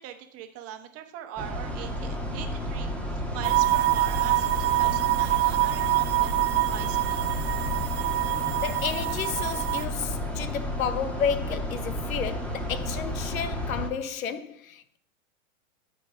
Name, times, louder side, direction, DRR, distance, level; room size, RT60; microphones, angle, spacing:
voice 1, 0.0-6.4 6.7-7.3, right 10 dB, 35° right, 1.3 m, -41 dB
sound 1, 1.4-13.9, equal, 5° left, 1.5 m, -32 dB
sound 2, 3.4-9.8, right 18 dB, 50° right, 0.9 m, -25 dB
voice 2, 8.6-15.0, left 7 dB, 75° left, 1.0 m, -32 dB
13.0 x 4.6 x 5.2 m
hypercardioid pair, 115°, 41 cm